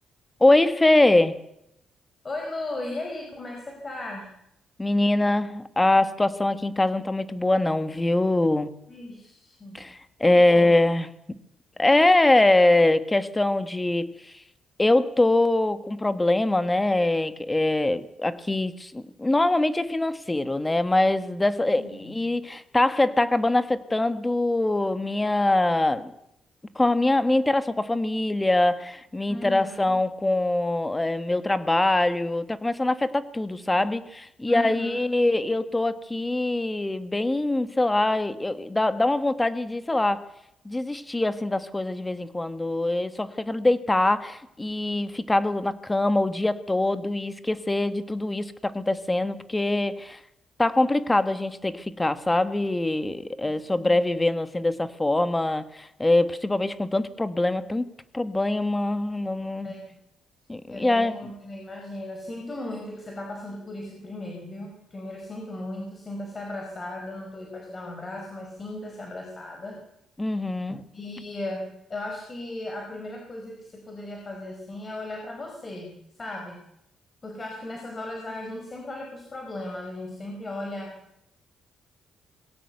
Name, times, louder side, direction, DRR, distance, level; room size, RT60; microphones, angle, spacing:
voice 1, 0.4-1.4 4.8-8.7 9.7-11.1 11.8-14.1 14.8-26.1 26.7-40.2 40.6-50.2 50.6-57.8 58.1-59.7 60.5-61.2 70.2-70.8, left 2 dB, 15° left, 14 dB, 1.5 m, -23 dB
voice 2, 2.2-4.3 8.9-9.8 10.2-10.7 21.8-22.2 29.3-29.9 34.5-35.0 53.4-54.0 59.6-59.8 60.7-69.8 70.9-76.6 77.2-81.0, left 2 dB, 30° left, 2 dB, 4.7 m, -36 dB
20.5 x 17.0 x 8.0 m, 0.80 s
cardioid pair, 90°, 0 cm